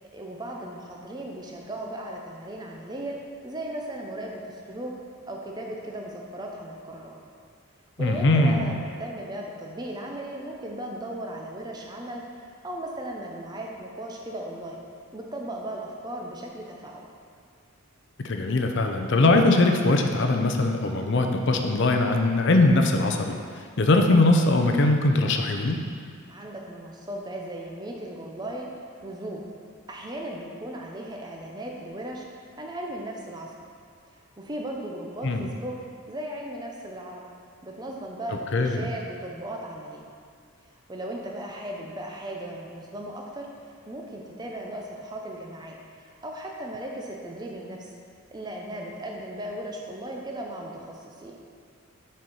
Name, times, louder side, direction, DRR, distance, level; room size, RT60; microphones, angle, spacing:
voice 1, 0.1-3.2 3.4-5.0 5.2-7.2 8.0-12.2 12.6-14.8 15.1-17.1 26.3-28.7 29.0-29.5 29.9-32.2 32.6-33.5 34.4-35.7 36.1-37.2 37.6-40.0 40.9-43.5 43.9-47.9 48.3-51.4, right 1 dB, 20° right, 0 dB, 0.6 m, -36 dB
voice 2, 8.0-8.7 18.2-23.4 23.8-25.8 35.2-35.4 38.5-38.9, left 2 dB, 50° left, 4 dB, 0.5 m, -21 dB
6.1 x 4.4 x 5.5 m, 2.2 s
head